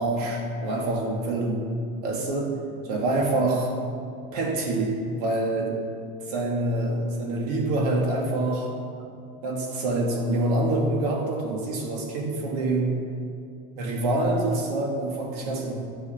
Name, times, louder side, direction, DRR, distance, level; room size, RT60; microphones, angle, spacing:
voice 1, 0.0-1.6 2.0-2.5 2.8-3.7 4.3-5.8 6.3-8.7 9.4-13.0 13.7-15.7, right 2 dB, 90° right, 0 dB, 2.4 m, -26 dB
11.0 x 8.1 x 5.9 m, 2.5 s
supercardioid pair, 145°, 20 cm